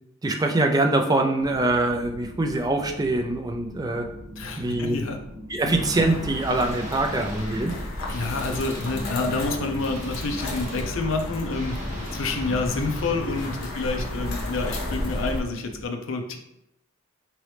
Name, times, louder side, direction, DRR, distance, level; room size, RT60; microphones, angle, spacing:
voice 1, 0.2-4.1 4.6-5.0 5.5-7.7, right 2 dB, 20° right, 4 dB, 0.3 m, -24 dB
sound 1, 1.4-15.8, equal, 65° right, 1.1 m, -43 dB
voice 2, 4.4-5.2 5.6-5.7 8.1-11.8 12.1-16.4, left 3 dB, 65° left, 4 dB, 0.5 m, -28 dB
sound 2, 5.7-15.4, left 1 dB, 85° left, 0.9 m, -33 dB
Guitar, 6.4-7.7 8.1-11.0 11.5-13.6, equal, 40° right, 0.9 m, -39 dB
3.7 x 3.0 x 3.3 m, 0.82 s
head